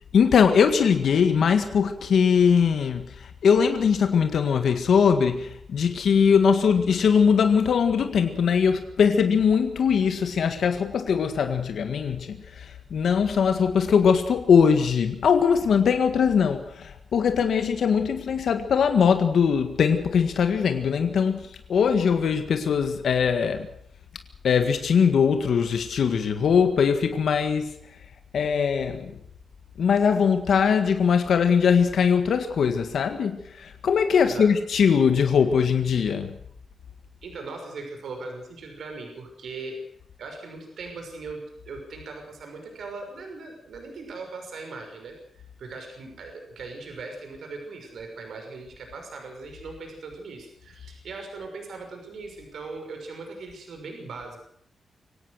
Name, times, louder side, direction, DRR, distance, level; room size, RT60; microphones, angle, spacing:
voice 1, 0.1-23.7 24.4-27.7 28.3-29.1 29.8-36.4, left 6 dB, 65° left, 7 dB, 1.8 m, -21 dB
voice 2, 34.2-34.5 37.2-39.8 40.2-41.4 41.6-45.1 45.6-54.4, right 3 dB, 65° right, 3 dB, 6.1 m, -39 dB
24.0 x 17.5 x 6.5 m, 0.69 s
wide cardioid pair, 175°, 0 cm